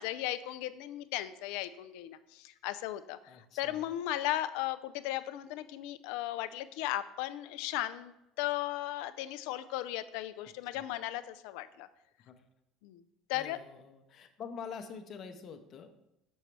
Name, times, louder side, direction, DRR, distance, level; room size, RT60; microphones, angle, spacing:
voice 1, 0.0-11.9 12.8-13.0 13.3-13.6, left 14 dB, 70° left, 12 dB, 0.3 m, -36 dB
voice 2, 3.3-3.8 10.7-10.8 12.3-12.4 13.3-16.0, left 6 dB, 50° left, 8 dB, 0.7 m, -46 dB
6.5 x 6.2 x 3.2 m, 0.87 s
hypercardioid pair, 70°, 0 cm